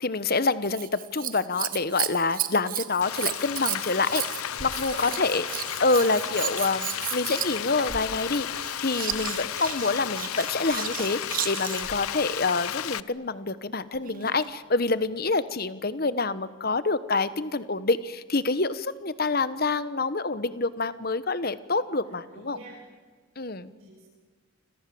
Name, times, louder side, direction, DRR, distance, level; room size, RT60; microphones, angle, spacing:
voice 1, 0.0-4.2 4.6-22.6 23.4-23.7, left 3 dB, 45° left, 15 dB, 1.1 m, -27 dB
Scissors, 0.6-12.0 13.9-14.6 15.3-15.4, right 11 dB, 40° right, 1.3 m, -34 dB
Frying (food), 3.0-13.0, left 10 dB, 85° left, 0.7 m, -33 dB
sound 1, 5.0-11.5 11.7-12.0, equal, ahead, 2.1 m, -49 dB
voice 2, 22.3-22.7 23.6-24.0, right 2 dB, 70° right, -5 dB, 7.3 m, -45 dB
29.0 x 26.0 x 7.8 m, 1.5 s
head